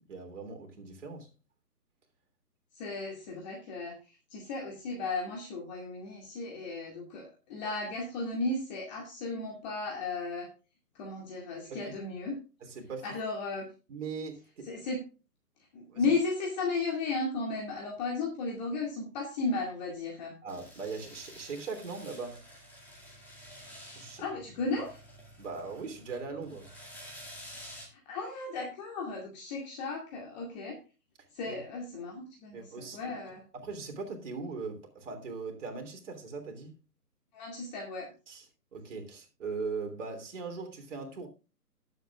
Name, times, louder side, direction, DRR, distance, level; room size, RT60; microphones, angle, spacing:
voice 1, 0.1-1.3 11.7-11.9 12.6-13.1 13.9-14.7 15.9-16.1 20.4-22.4 23.9-24.2 25.4-26.7 31.4-31.6 32.5-33.1 33.5-36.8 38.3-38.4 38.7-41.3, right 4 dB, 50° right, 3.3 m, -40 dB
voice 2, 2.8-10.5 10.9-12.4 13.0-13.7 14.6-15.0 15.7-20.4 24.2-25.0 27.9-30.8 31.3-33.4 37.3-38.1, left 3 dB, 25° left, 2.3 m, -35 dB
sound 1, 20.5-27.9, equal, 5° left, 2.2 m, -50 dB
18.5 x 8.0 x 2.4 m
hypercardioid pair, 150°, 47 cm